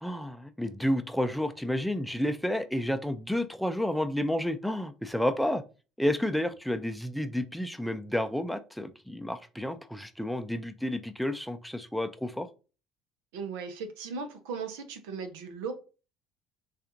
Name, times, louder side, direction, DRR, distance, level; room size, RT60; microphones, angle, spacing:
voice 1, 0.0-5.6 6.0-12.5, left 1 dB, ahead, 0.5 m, -30 dB
voice 2, 13.3-15.7, right 5 dB, 75° right, 0.7 m, -37 dB
6.4 x 2.5 x 2.6 m
hypercardioid pair, 65°, 0 cm